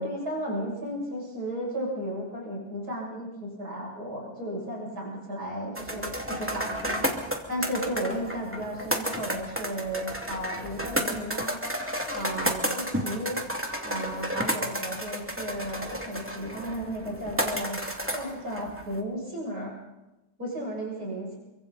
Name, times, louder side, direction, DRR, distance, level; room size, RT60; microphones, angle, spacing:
voice 1, 0.0-7.1 7.5-11.6 12.1-13.4 13.8-19.7 20.4-21.4, equal, 85° right, -3 dB, 8.0 m, -34 dB
sound 1, 5.8-19.0, equal, 10° right, 2.5 m, -32 dB
28.5 x 24.0 x 4.2 m, 1.0 s
omnidirectional pair, 1.6 m